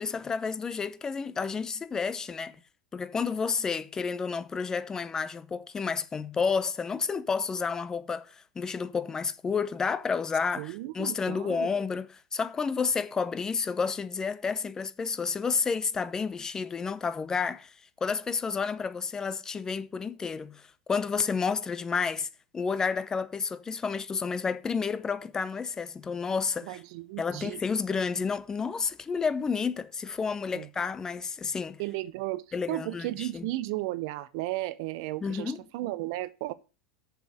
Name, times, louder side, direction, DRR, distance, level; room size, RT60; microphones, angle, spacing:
voice 1, 0.0-2.6 2.9-22.3 22.5-26.8 27.2-31.8 32.5-33.5 35.2-35.6, left 5 dB, 20° left, 0.8 m, -30 dB
voice 2, 10.6-11.7 26.7-27.6 30.5-30.7 31.8-36.5, right 17 dB, 55° right, 0.8 m, -34 dB
7.0 x 6.1 x 7.6 m
hypercardioid pair, 90°, 3 cm